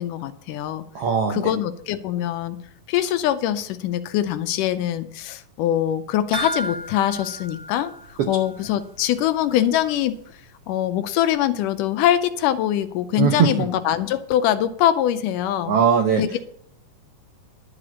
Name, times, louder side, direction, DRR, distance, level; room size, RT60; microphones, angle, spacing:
voice 1, 0.0-0.8 1.3-2.6 2.9-7.9 8.3-10.2 10.7-15.7 16.2-16.4, left 11 dB, 85° left, 11 dB, 2.2 m, -23 dB
voice 2, 0.9-1.4 8.2-8.3 13.2-13.7 15.7-16.2, right 7 dB, 80° right, 5 dB, 1.3 m, -19 dB
sound 1, 6.3-8.9 9.2-9.3 9.7-9.8, right 2 dB, 50° right, 1.3 m, -33 dB
12.0 x 5.0 x 8.4 m, 0.66 s
omnidirectional pair, 3.8 m